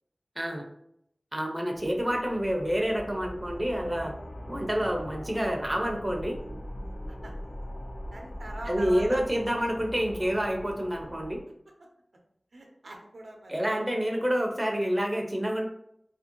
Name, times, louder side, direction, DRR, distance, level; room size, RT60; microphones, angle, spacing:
voice 1, 0.4-0.7 1.3-4.2 4.5-6.4 8.7-11.4 13.5-15.6, equal, 15° right, 2 dB, 0.5 m, -28 dB
sound 1, 1.7-11.4, equal, 55° left, 0.5 m, -41 dB
voice 2, 7.1-7.5 8.1-9.2 12.5-13.6, right 2 dB, 80° right, 1 dB, 0.6 m, -42 dB
2.8 x 2.5 x 2.8 m, 0.73 s
wide cardioid pair, 75°, 0 cm